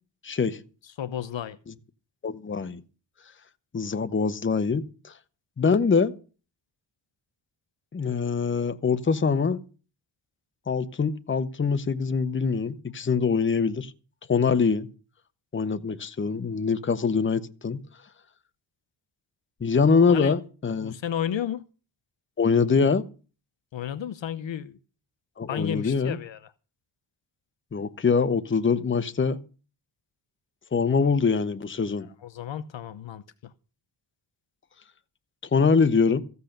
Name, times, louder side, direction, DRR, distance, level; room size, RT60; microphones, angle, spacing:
voice 1, 0.2-0.6 2.2-2.8 3.7-5.1 5.6-6.1 7.9-9.6 10.7-13.9 14.3-14.9 15.5-17.8 19.6-20.9 22.4-23.0 25.4-26.2 27.7-29.4 30.7-32.1 35.5-36.2, left 5 dB, 25° left, 0.8 m, -24 dB
voice 2, 0.8-1.6 20.0-20.4 20.8-21.6 23.7-24.8 25.5-26.5 32.2-33.5, left 9 dB, 65° left, 0.8 m, -33 dB
15.0 x 8.2 x 6.7 m
wide cardioid pair, 120°, 50 cm